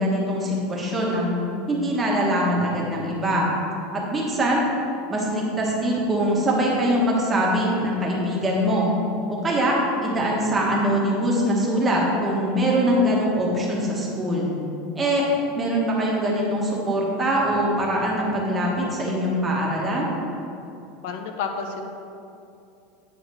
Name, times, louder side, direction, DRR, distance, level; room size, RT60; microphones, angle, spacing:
voice 1, 0.0-1.4 1.7-3.5 4.1-4.6 5.1-8.9 9.4-14.5 15.0-15.3 15.5-20.1, equal, 15° right, -3 dB, 1.3 m, -23 dB
voice 2, 21.0-21.9, left 5 dB, 60° left, 5 dB, 0.7 m, -30 dB
9.2 x 4.1 x 6.8 m, 2.7 s
supercardioid pair, 175°, 0 cm